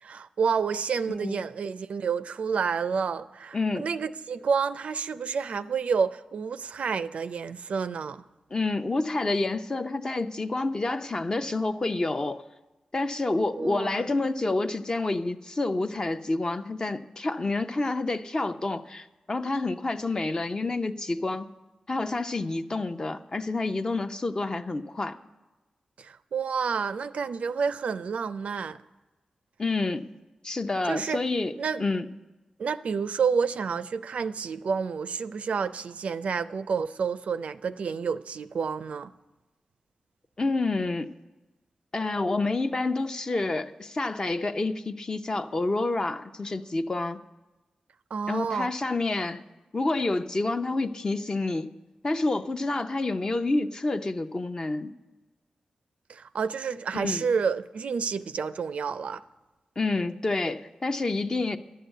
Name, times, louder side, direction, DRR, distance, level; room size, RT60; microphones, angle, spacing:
voice 1, 0.0-8.2 13.6-14.1 26.0-28.8 30.8-31.2 31.6-31.8 32.6-39.1 48.1-48.7 56.1-59.2, right 6 dB, 75° right, 0.4 m, -29 dB
voice 2, 3.5-3.8 8.5-12.4 12.9-21.5 21.9-25.2 29.6-30.1 30.4-32.1 40.4-41.1 41.9-47.2 48.3-49.4 49.7-51.7 52.0-54.9 56.9-57.2 59.8-61.6, left 2 dB, 35° left, 0.6 m, -28 dB
11.0 x 6.8 x 9.0 m
cardioid pair, 70°, 2 cm